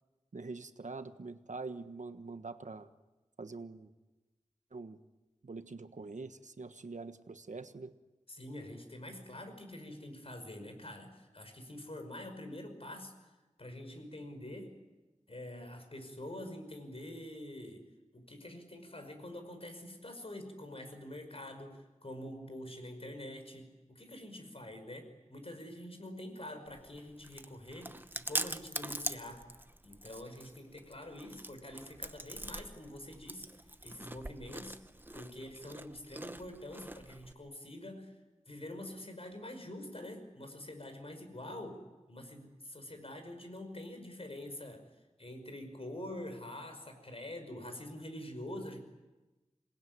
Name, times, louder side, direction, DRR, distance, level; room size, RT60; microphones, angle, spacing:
voice 1, 0.3-2.9 3.4-3.9 4.7-5.0 5.4-7.9, right 3 dB, 80° right, 9 dB, 1.3 m, -44 dB
voice 2, 8.3-13.1 13.6-14.8 15.3-17.8 18.1-29.5 29.8-33.5 33.8-34.8 35.1-38.2 38.5-44.8 45.2-48.8, left 1 dB, 50° left, 6 dB, 5.5 m, -46 dB
Chewing mastication, 26.7-37.3, right 1 dB, 15° right, 1.0 m, -43 dB
27.5 x 20.0 x 9.6 m, 1.1 s
wide cardioid pair, 65°, 12 cm